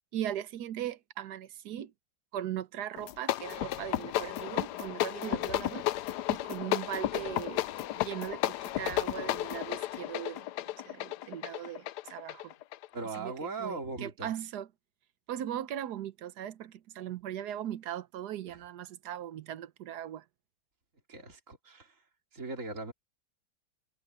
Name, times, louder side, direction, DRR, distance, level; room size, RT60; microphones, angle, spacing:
voice 1, 0.1-1.9 2.3-5.8 6.3-7.6 8.0-10.5 10.8-12.5 13.2-13.3 13.6-14.7 15.3-20.2, right 11 dB, 75° right, 1.3 m, -39 dB
sound 1, 3.0-13.3, left 14 dB, 80° left, 1.2 m, -33 dB
voice 2, 12.9-14.3 21.1-22.0 22.3-22.9, right 3 dB, 50° right, 3.4 m, -39 dB
omnidirectional pair, 1.8 m